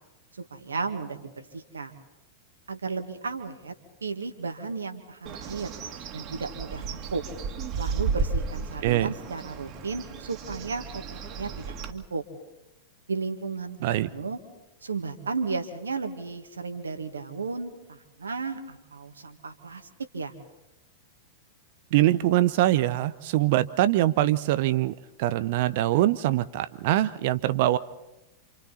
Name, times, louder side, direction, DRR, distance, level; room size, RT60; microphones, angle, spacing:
voice 1, 0.4-1.9 2.7-3.7 4.0-5.7 6.1-7.2 7.8-12.2 13.1-14.4 14.8-19.9 20.1-20.3, right 4 dB, 80° right, 6 dB, 1.9 m, -34 dB
Bird, 5.3-11.9, right 5 dB, 35° right, 2.4 m, -33 dB
voice 2, 8.8-9.1 13.8-14.1 21.9-27.8, right 14 dB, 55° right, 14 dB, 0.7 m, -23 dB
29.0 x 27.5 x 4.2 m, 0.96 s
figure-of-eight pair, 95°, 0 cm